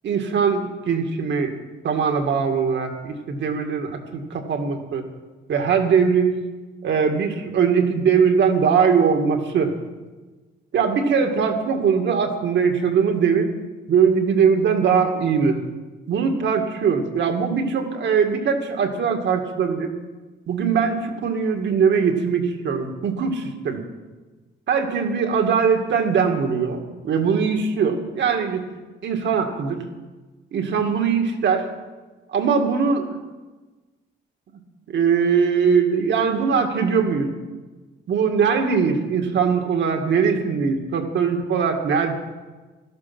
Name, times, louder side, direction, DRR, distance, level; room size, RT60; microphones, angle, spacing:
voice 1, 0.0-1.5 1.8-5.0 5.5-6.4 6.8-9.7 10.7-13.5 13.9-15.6 16.1-19.9 20.5-23.9 24.7-28.7 29.0-29.8 30.5-31.7 32.3-33.1 34.9-37.3 38.1-42.1, right 6 dB, 65° right, 4 dB, 2.2 m, -21 dB
16.5 x 12.5 x 6.1 m, 1.3 s
cardioid pair, 90°, 20 cm